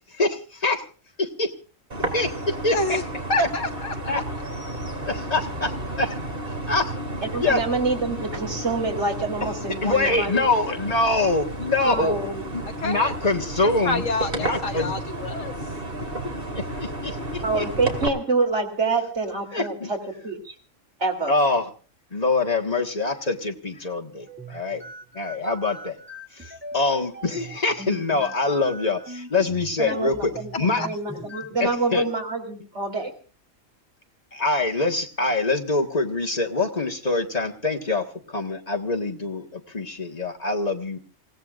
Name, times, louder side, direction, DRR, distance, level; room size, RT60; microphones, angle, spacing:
voice 1, 0.2-0.8 1.2-1.5 2.1-2.8 3.4-3.5 4.1-4.2 5.1-6.2 6.7-7.0 7.4-7.6 9.8-12.2 12.5-14.0 14.3-14.9 16.5-17.7 19.5-19.9 21.3-21.7 22.1-24.8 25.1-26.0 26.3-30.3 30.6-30.8 31.6-32.0 34.3-41.0, left 3 dB, 30° left, 1 dB, 1.8 m, -24 dB
sound 1, 1.9-18.1, right 1 dB, 45° right, 2.8 m, -32 dB
voice 2, 2.7-3.0 3.3-4.0 11.9-12.1 12.8-13.1 13.8-15.5 30.8-31.3, left 3 dB, 75° left, 5 dB, 1.7 m, -28 dB
voice 3, 7.2-10.4 11.8-12.6 17.4-20.0 20.2-20.5 21.0-21.3 29.8-33.1, right 3 dB, 60° right, 2 dB, 3.6 m, -26 dB
sound 2, 24.2-31.7, right 1 dB, 10° right, 1.0 m, -41 dB
28.5 x 16.5 x 2.5 m, 0.37 s
omnidirectional pair, 1.3 m